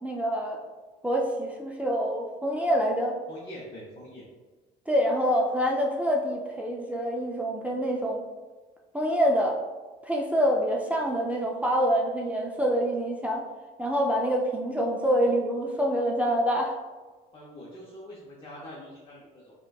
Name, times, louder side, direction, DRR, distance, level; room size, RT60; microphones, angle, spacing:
voice 1, 0.0-0.6 1.0-3.2 4.9-8.2 8.9-9.6 10.0-13.4 13.8-16.8, equal, 10° right, 0 dB, 0.4 m, -26 dB
voice 2, 3.3-4.2 17.3-19.5, left 1 dB, 30° left, -4 dB, 0.7 m, -44 dB
4.9 x 2.2 x 2.3 m, 1.3 s
cardioid pair, 110°, 17 cm